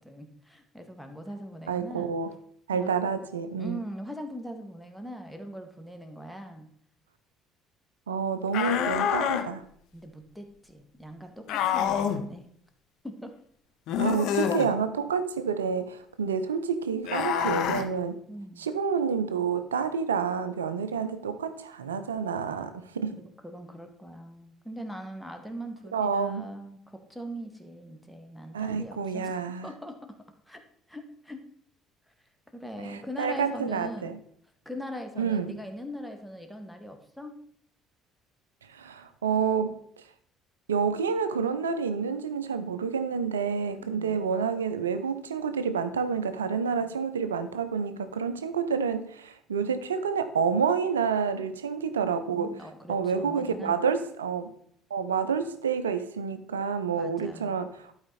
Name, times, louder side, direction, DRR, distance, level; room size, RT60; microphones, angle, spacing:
voice 1, 0.0-2.1 2.7-2.9 3.6-6.7 9.9-12.5 13.0-13.3 14.3-14.4 18.3-18.7 23.2-29.3 29.6-30.1 30.5-30.6 30.9-31.4 32.5-34.1 34.6-37.3 43.8-44.3 52.1-53.8 57.0-57.5, equal, ahead, 5 dB, 1.7 m, -41 dB
voice 2, 1.7-2.3 2.7-3.8 8.1-9.6 14.0-18.2 18.6-23.2 25.9-26.4 28.5-29.7 32.8-34.1 35.2-35.6 38.7-39.8 40.7-52.6 52.9-54.5 54.9-57.9, right 6 dB, 90° right, 11 dB, 0.6 m, -29 dB
sound 1, 8.5-9.5 11.5-12.2 13.9-14.7 17.0-17.8, left 9 dB, 65° left, 0.8 m, -27 dB
11.5 x 4.9 x 4.2 m, 0.65 s
hypercardioid pair, 55°, 0 cm